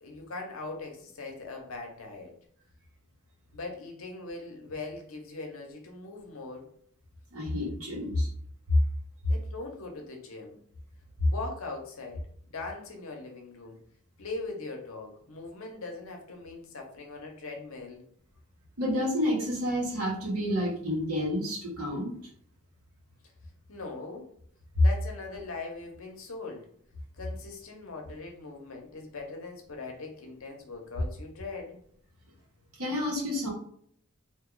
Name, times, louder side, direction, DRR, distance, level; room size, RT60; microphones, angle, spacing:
voice 1, 0.0-2.4 3.5-6.7 9.3-10.6 11.2-12.3 12.5-13.8 14.2-18.0 23.7-24.3 24.8-26.7 27.2-31.8, left 3 dB, 70° left, 2 dB, 0.7 m, -40 dB
voice 2, 7.3-8.3 18.8-22.2 24.8-24.9 32.8-33.5, left 1 dB, 85° right, -2 dB, 1.2 m, -29 dB
2.6 x 2.3 x 3.8 m, 0.63 s
head